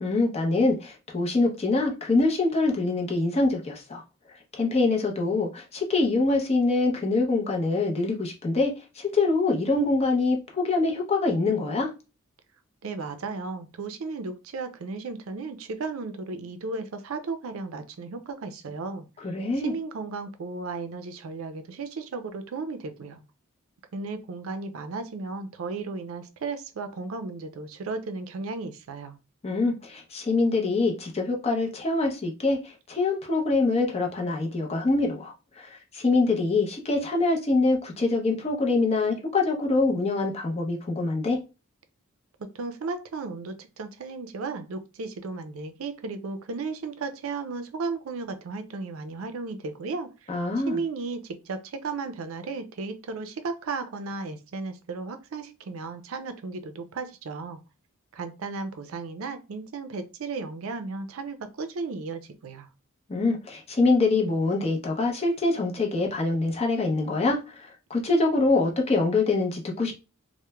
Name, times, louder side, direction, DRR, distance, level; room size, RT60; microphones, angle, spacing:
voice 1, 0.0-4.0 4.5-11.9 19.2-19.7 29.4-41.4 50.3-50.8 63.1-70.0, left 3 dB, 30° left, 0.6 m, -24 dB
voice 2, 12.8-19.1 19.6-23.2 23.9-29.2 42.5-50.3 50.6-57.6 58.1-62.7, right 4 dB, 70° right, 0.4 m, -35 dB
3.0 x 2.1 x 2.2 m
head